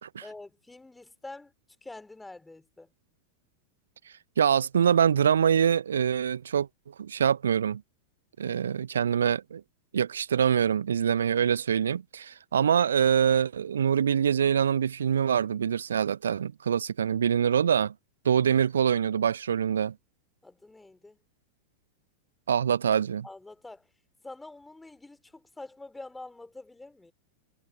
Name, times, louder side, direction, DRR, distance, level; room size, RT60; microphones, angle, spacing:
voice 1, 0.2-1.5 1.8-2.9 20.4-21.2 23.2-23.9 24.2-27.1, left 2 dB, 5° left, 3.2 m, -46 dB
voice 2, 4.4-6.7 7.0-7.8 8.4-9.6 9.9-17.9 18.2-19.9 22.5-23.3, right 8 dB, 65° right, 1.0 m, -24 dB
figure-of-eight pair, 90°, 0 cm